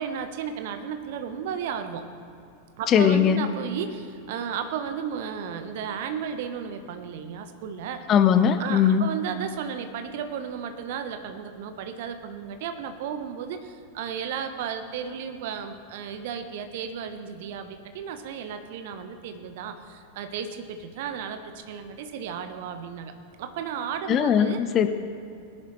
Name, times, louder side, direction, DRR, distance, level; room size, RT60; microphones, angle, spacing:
voice 1, 0.0-2.1 2.8-8.0 8.6-23.1 23.4-24.6, right 7 dB, 50° right, 8 dB, 1.0 m, -34 dB
voice 2, 2.9-3.5 8.1-9.1 24.1-24.9, left 8 dB, 30° left, 9 dB, 0.7 m, -20 dB
20.0 x 11.0 x 3.1 m, 2.6 s
figure-of-eight pair, 90°, 0 cm